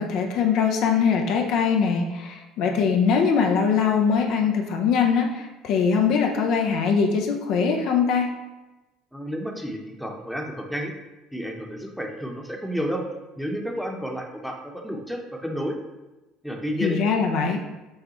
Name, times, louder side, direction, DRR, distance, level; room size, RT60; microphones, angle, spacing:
voice 1, 0.0-8.3 16.8-17.6, left 6 dB, 65° left, 3 dB, 0.5 m, -22 dB
voice 2, 9.1-10.9 11.3-13.0 13.4-15.8 16.4-17.0, equal, ahead, 1 dB, 0.8 m, -31 dB
6.3 x 2.3 x 2.9 m, 1.1 s
hypercardioid pair, 70°, 0 cm